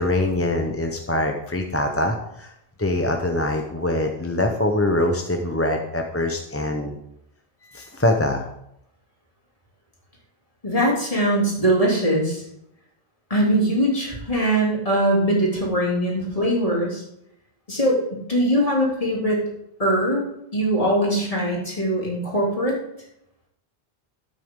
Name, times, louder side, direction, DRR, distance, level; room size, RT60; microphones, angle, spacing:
voice 1, 0.0-2.5 2.8-7.0 7.6-8.5, left 1 dB, 15° left, 3 dB, 0.7 m, -23 dB
voice 2, 10.6-12.4 13.3-17.0 17.7-19.4 19.8-20.2 20.5-22.7, right 1 dB, 35° left, -4 dB, 3.1 m, -21 dB
12.5 x 8.3 x 3.7 m, 0.80 s
omnidirectional pair, 1.1 m